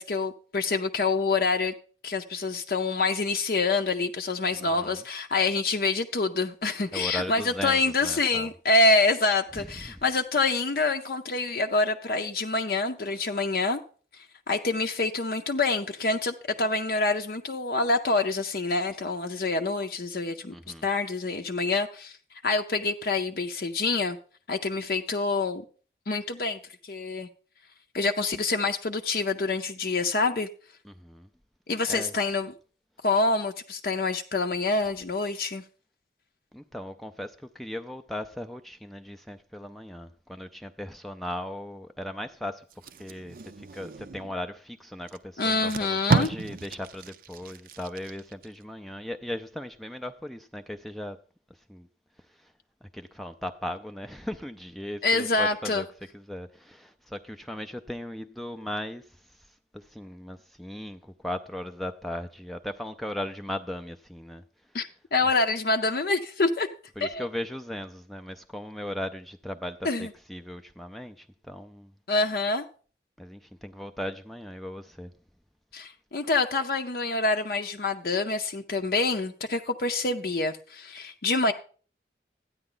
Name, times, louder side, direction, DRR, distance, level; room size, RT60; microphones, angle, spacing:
voice 1, 0.0-1.7 2.0-13.8 14.1-20.5 20.8-22.2 22.4-24.2 24.5-25.6 26.1-27.3 27.9-30.5 31.7-32.5 33.0-35.6 45.4-46.3 55.0-55.8 64.7-66.7 67.0-67.3 69.8-70.1 72.1-72.6 75.7-81.5, left 3 dB, 55° left, 0.6 m, -26 dB
voice 2, 4.5-5.0 6.9-8.5 9.5-10.0 20.5-20.9 30.8-31.3 31.9-32.1 36.5-42.6 43.0-51.2 51.7-51.9 52.8-55.9 56.1-59.0 59.7-64.4 67.0-71.9 73.2-75.1, left 1 dB, ahead, 0.4 m, -37 dB
Packing tape duct tape, 42.7-44.4 45.1-45.2 45.5-48.5 48.9-49.1, right 4 dB, 50° right, 0.5 m, -31 dB
13.0 x 9.7 x 3.8 m
head